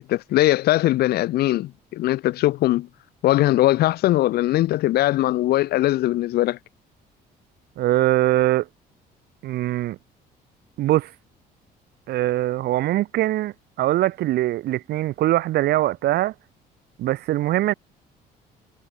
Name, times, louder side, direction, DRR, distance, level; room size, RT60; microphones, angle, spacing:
voice 1, 0.1-2.9 3.2-6.6, left 15 dB, 70° left, 0.7 m, -20 dB
voice 2, 7.8-8.7 9.4-10.0 10.8-11.1 12.1-16.3 17.0-17.7, right 15 dB, 70° right, 1.6 m, -22 dB
cardioid pair, 110°, 17 cm